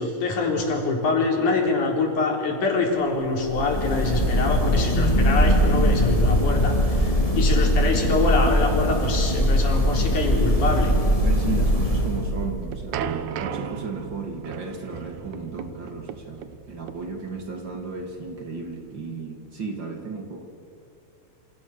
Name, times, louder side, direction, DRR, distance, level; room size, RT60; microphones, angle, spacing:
voice 1, 0.0-10.9, left 3 dB, 90° left, 1 dB, 5.5 m, -25 dB
sound 1, 3.4-12.6, equal, 10° left, 2.9 m, -21 dB
voice 2, 4.9-5.3 7.1-7.2 11.2-20.4, right 4 dB, 40° right, 4 dB, 2.7 m, -34 dB
sound 2, 12.3-19.1, right 8 dB, 80° right, 2.5 m, -36 dB
28.0 x 26.0 x 7.3 m, 2.5 s
omnidirectional pair, 3.4 m